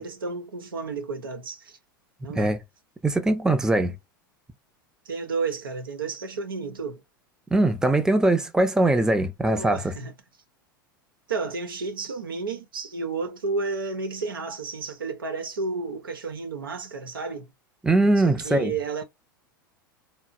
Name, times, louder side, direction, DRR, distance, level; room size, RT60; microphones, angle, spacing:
voice 1, 0.0-1.8 2.2-2.6 5.1-7.0 9.4-10.1 11.3-17.5 18.2-19.0, right 4 dB, 80° right, 0.8 m, -32 dB
voice 2, 3.0-3.9 7.5-9.8 17.8-18.7, right 2 dB, 5° right, 0.6 m, -21 dB
4.0 x 2.0 x 2.4 m
figure-of-eight pair, 90°, 12 cm